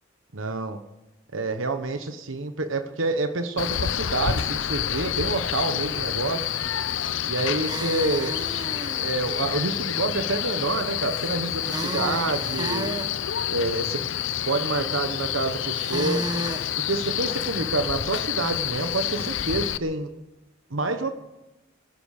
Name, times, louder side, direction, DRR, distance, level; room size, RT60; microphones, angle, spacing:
voice 1, 0.3-0.8 1.3-6.5 7.2-8.5 9.0-12.9 13.5-14.0 14.4-16.2 16.8-20.1 20.7-21.1, right 3 dB, 80° right, 8 dB, 1.2 m, -28 dB
Male speech man speaking, 3.6-19.8, left 10 dB, 70° left, 0.6 m, -28 dB
sound 1, 7.6-9.1 11.6-13.1 15.7-16.7, right 1 dB, 20° right, 1.4 m, -32 dB
19.5 x 11.0 x 6.6 m, 0.99 s
head